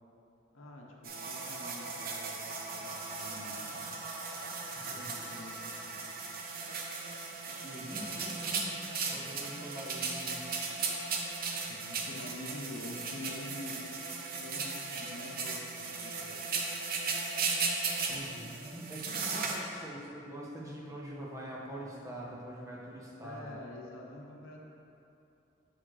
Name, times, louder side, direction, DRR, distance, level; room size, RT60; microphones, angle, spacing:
voice 1, 0.5-4.0 4.8-6.2 7.9-8.2 11.7-14.0 14.3-16.5 23.2-24.6, left 2 dB, 85° left, -1 dB, 0.9 m, -47 dB
sound 1, 1.0-19.6, right 4 dB, 50° right, 0.6 m, -37 dB
voice 2, 4.8-5.2 7.5-10.5 18.1-23.6, right 1 dB, 15° right, -4 dB, 0.9 m, -44 dB
6.3 x 6.1 x 3.2 m, 2.8 s
head